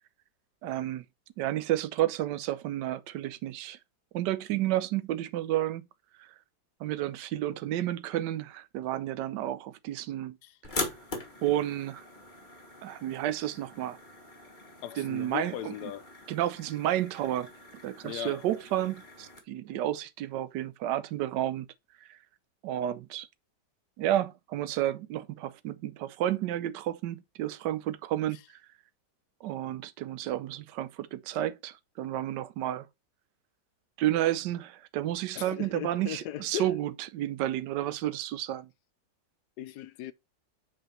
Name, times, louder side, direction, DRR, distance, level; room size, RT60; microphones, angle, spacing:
voice 1, 0.6-1.0 1.4-3.8 4.1-5.8 6.2-6.3 6.8-10.4 11.4-12.1 12.8-14.0 15.0-15.7 16.3-17.5 17.8-21.7 22.0-22.2 22.6-23.3 24.0-28.6 29.4-32.9 34.0-38.7, right 13 dB, 75° right, 1.3 m, -31 dB
sound 1, 10.6-19.4, left 2 dB, 30° left, 1.5 m, -42 dB
voice 2, 14.8-16.0 18.0-18.4 35.3-36.8 39.6-40.1, left 12 dB, 70° left, 1.1 m, -38 dB
6.3 x 5.1 x 4.4 m
omnidirectional pair, 2.0 m